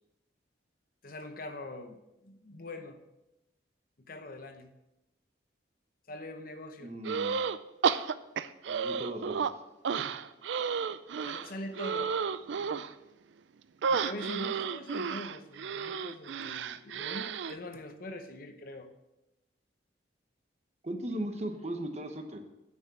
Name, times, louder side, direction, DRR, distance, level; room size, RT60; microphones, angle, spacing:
voice 1, 1.0-3.0 4.0-4.7 6.1-6.9 11.2-12.1 12.6-12.9 13.9-18.9, left 1 dB, 50° left, 7 dB, 0.8 m, -43 dB
voice 2, 6.8-7.3 8.7-9.6 20.8-22.4, right 1 dB, 35° right, 5 dB, 0.9 m, -37 dB
sound 1, 7.0-7.6 7.8-9.5 9.8-12.9 13.8-17.5, right 6 dB, 75° right, 0.4 m, -32 dB
9.4 x 6.2 x 5.8 m, 0.94 s
head